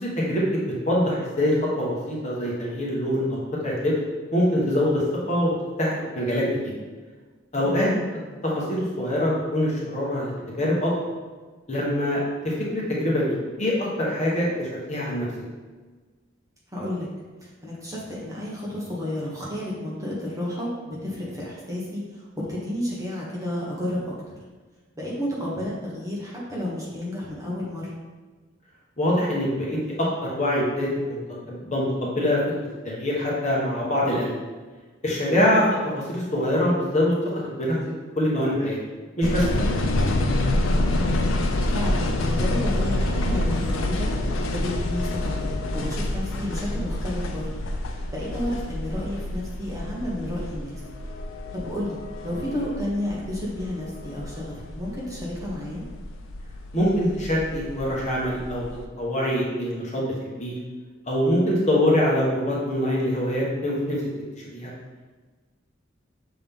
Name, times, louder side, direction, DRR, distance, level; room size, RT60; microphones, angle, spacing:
voice 1, 0.0-3.9 4.3-5.5 5.8-6.7 7.5-7.9 8.4-10.3 10.6-10.9 11.7-15.3 29.0-32.4 32.8-34.3 35.0-35.6 35.9-37.1 37.6-37.8 38.1-38.8 39.2-39.7 56.7-58.6 59.0-60.5 61.1-64.0 64.4-64.7, left 1 dB, 35° left, -5 dB, 1.3 m, -24 dB
voice 2, 7.6-8.1 16.7-17.1 17.6-24.4 25.0-27.9 35.3-35.7 40.9-44.1 44.5-47.5 48.1-50.8 51.5-55.8, left 1 dB, 15° right, -6 dB, 1.3 m, -31 dB
sound 1, 39.2-58.8, left 1 dB, 80° left, 0.6 m, -28 dB
6.8 x 3.9 x 3.6 m, 1.4 s
head